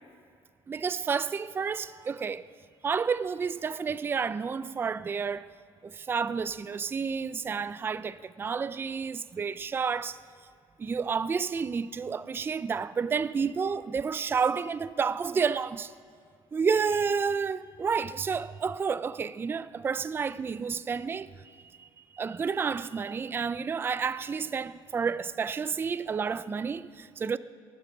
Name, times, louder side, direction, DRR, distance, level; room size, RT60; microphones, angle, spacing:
voice 1, 0.7-2.4 2.8-5.5 5.8-10.2 10.8-15.9 16.5-21.9 22.1-27.4, right 5 dB, 20° right, 0.4 m, -30 dB
19.5 x 12.0 x 6.1 m
cardioid pair, 130°, 10 cm